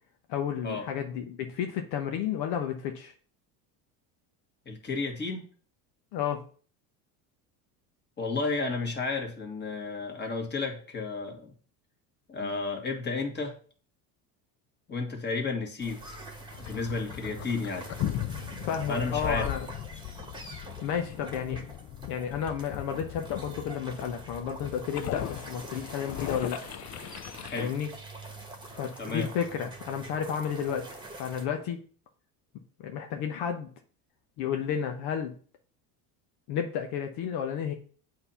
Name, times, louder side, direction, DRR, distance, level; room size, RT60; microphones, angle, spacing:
voice 1, 0.3-3.1 6.1-6.4 12.4-12.5 18.7-19.7 20.8-21.6 22.1-26.6 27.6-27.9 28.7-31.8 32.8-33.7 34.4-35.3 36.5-37.7, left 8 dB, 65° left, 4 dB, 0.9 m, -32 dB
voice 2, 4.7-5.4 8.2-11.5 12.3-13.5 14.9-16.0 16.6-17.9 18.9-19.5 27.4-27.7 29.0-29.3, left 3 dB, 25° left, 2 dB, 1.8 m, -32 dB
sound 1, 15.8-31.4, right 2 dB, 10° right, 1.3 m, -46 dB
sound 2, 16.5-27.6, left 12 dB, 40° left, 0.4 m, -38 dB
7.9 x 2.8 x 5.6 m, 0.43 s
supercardioid pair, 100°, 41 cm